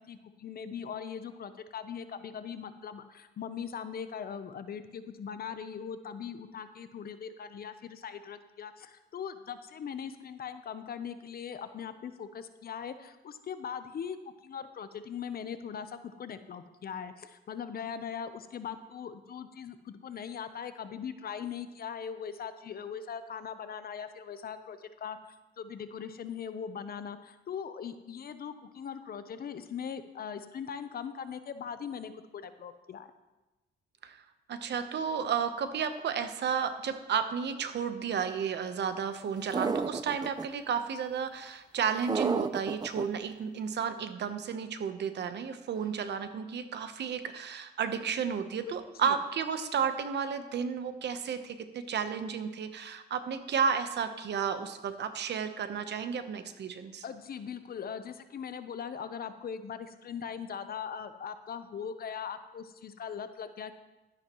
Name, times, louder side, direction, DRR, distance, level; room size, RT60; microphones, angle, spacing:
voice 1, 0.0-14.2 14.4-33.1 49.0-49.2 57.0-63.7, left 7 dB, 50° left, 11 dB, 0.8 m, -40 dB
voice 2, 34.5-57.0, right 7 dB, 60° right, 9 dB, 1.0 m, -32 dB
sound 1, 39.5-40.5 42.1-43.0, right 4 dB, 20° right, 0.4 m, -31 dB
12.0 x 10.5 x 3.1 m, 1.1 s
cardioid pair, 90°, 20 cm